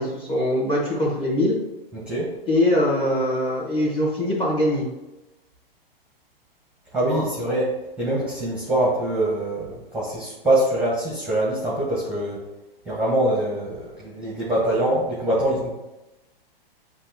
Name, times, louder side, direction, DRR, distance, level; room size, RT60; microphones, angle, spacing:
voice 1, 0.0-1.6 2.4-4.9 7.0-7.2, left 1 dB, 20° left, -5 dB, 1.5 m, -22 dB
voice 2, 1.9-2.3 6.9-12.4 12.8-15.7, right 1 dB, 5° right, -5 dB, 1.0 m, -24 dB
7.3 x 2.5 x 2.8 m, 0.99 s
hypercardioid pair, 120°, 30 cm